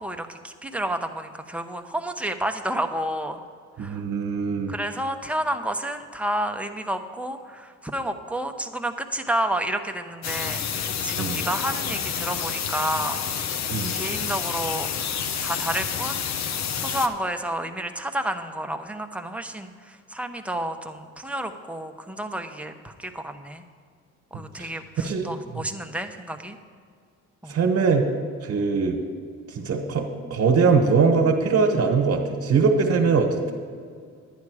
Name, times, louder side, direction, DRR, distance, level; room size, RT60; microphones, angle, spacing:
voice 1, 0.0-3.4 3.8-4.0 4.7-13.2 13.9-14.9 15.4-16.2 16.8-23.6 24.3-26.6 27.4-27.6, right 1 dB, 5° right, 5 dB, 0.8 m, -30 dB
voice 2, 3.8-4.7 11.2-11.4 13.7-13.9 24.3-24.7 25.0-25.6 27.5-28.1 28.4-29.0 29.5-33.5, right 5 dB, 60° right, 2 dB, 1.4 m, -22 dB
sound 1, 10.2-17.1, left 7 dB, 65° left, 0.8 m, -29 dB
11.5 x 9.7 x 4.8 m, 2.1 s
cardioid pair, 90°, 30 cm